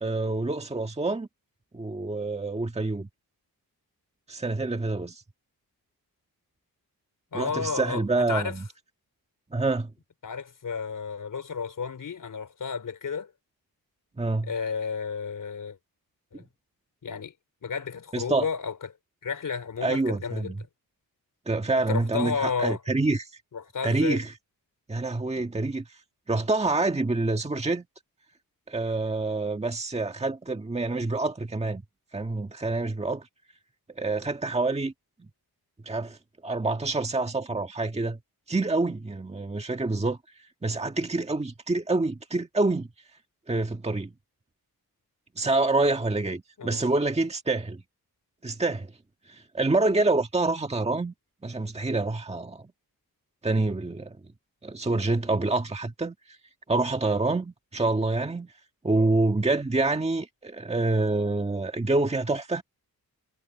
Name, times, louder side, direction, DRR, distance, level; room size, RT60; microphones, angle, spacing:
voice 1, 0.0-1.3 1.7-3.1 4.3-5.2 7.3-8.6 9.5-9.9 14.2-14.5 16.3-16.4 18.1-18.5 19.8-20.6 21.5-23.3 23.8-24.3 24.9-26.0 26.3-27.8 28.7-31.8 32.1-33.3 33.9-34.9 35.2-35.3 35.8-36.2 36.4-38.2 38.5-40.2 40.6-42.9 43.5-44.1 45.4-47.8 48.4-48.9 49.3-51.1 51.4-52.7 53.4-54.2 54.6-56.4 56.7-58.5 58.8-62.6, right 2 dB, 15° right, 1.6 m, -27 dB
voice 2, 7.3-8.6 10.2-13.3 14.4-15.8 16.3-16.4 17.0-17.3 17.6-18.9 19.2-20.5 21.9-22.8 23.5-24.2 46.6-46.8, left 5 dB, 55° left, 3.7 m, -32 dB
wide cardioid pair, 135°, 37 cm